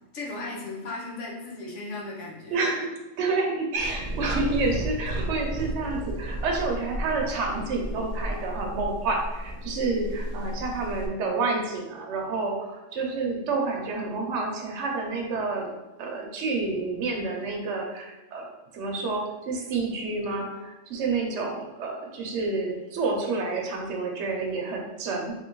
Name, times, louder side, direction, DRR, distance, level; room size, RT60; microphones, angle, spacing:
voice 1, 0.1-2.6, left 2 dB, 70° left, -2 dB, 1.2 m, -36 dB
voice 2, 2.5-2.9 3.2-15.7 16.0-25.3, right 3 dB, 65° right, 0 dB, 0.9 m, -29 dB
sound 1, 3.7-11.1, right 1 dB, 85° right, 0.3 m, -33 dB
3.5 x 3.0 x 3.0 m, 1.0 s
omnidirectional pair, 1.3 m